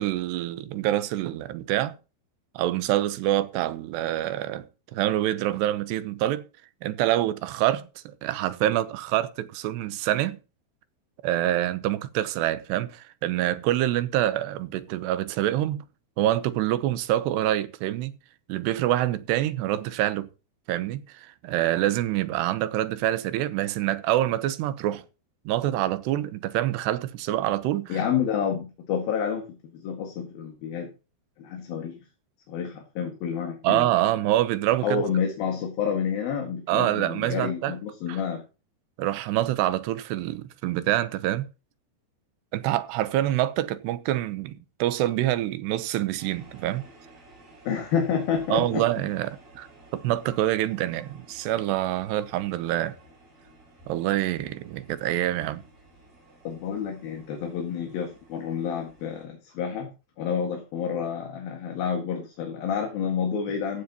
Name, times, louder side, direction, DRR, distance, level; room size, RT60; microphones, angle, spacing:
voice 1, 0.0-2.0 2.5-4.6 4.9-6.5 6.8-10.4 11.2-15.8 16.2-18.1 18.5-20.3 20.7-25.0 25.5-28.0 33.6-35.0 36.7-37.7 38.1-38.2 39.0-41.5 42.5-44.5 44.8-46.8 48.5-49.7 49.9-53.0 53.9-55.6, right 13 dB, 90° right, 3.0 m, -26 dB
voice 2, 27.9-30.9 31.4-32.0 32.5-33.9 34.8-38.4 47.7-48.8 56.5-59.9 60.2-63.8, left 7 dB, 65° left, 3.6 m, -29 dB
sound 1, 46.2-59.2, right 2 dB, 60° right, 8.4 m, -53 dB
15.0 x 11.5 x 2.9 m
omnidirectional pair, 4.7 m